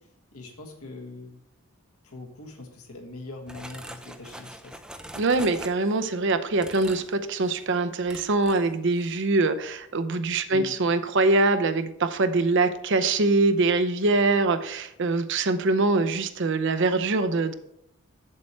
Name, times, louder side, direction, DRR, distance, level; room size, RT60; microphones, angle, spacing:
voice 1, 0.3-1.4 2.0-4.8 10.5-10.8, left 2 dB, 75° left, 2 dB, 1.6 m, -42 dB
sound 1, 3.5-6.1 6.6-7.1 7.4-7.7 8.1-8.7 9.0-9.2, right 1 dB, 5° right, 0.4 m, -43 dB
voice 2, 5.2-17.5, right 3 dB, 55° right, 10 dB, 0.6 m, -23 dB
7.6 x 7.5 x 4.4 m, 0.76 s
head